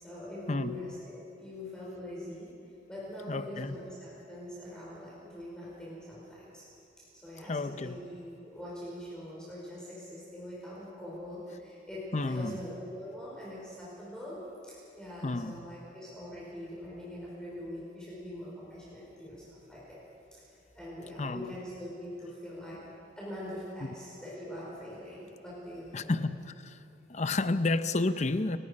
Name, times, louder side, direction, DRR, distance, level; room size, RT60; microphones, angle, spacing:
voice 1, 0.0-2.5 2.9-6.6 7.1-20.0 20.7-22.8 23.2-26.1, left 1 dB, 5° left, -7 dB, 5.4 m, -43 dB
voice 2, 3.3-3.8 7.5-8.0 12.1-12.6 15.2-15.6 21.2-21.5 25.9-26.8 27.1-28.6, left 2 dB, 35° left, 11 dB, 0.7 m, -31 dB
30.0 x 18.0 x 5.3 m, 2.8 s
head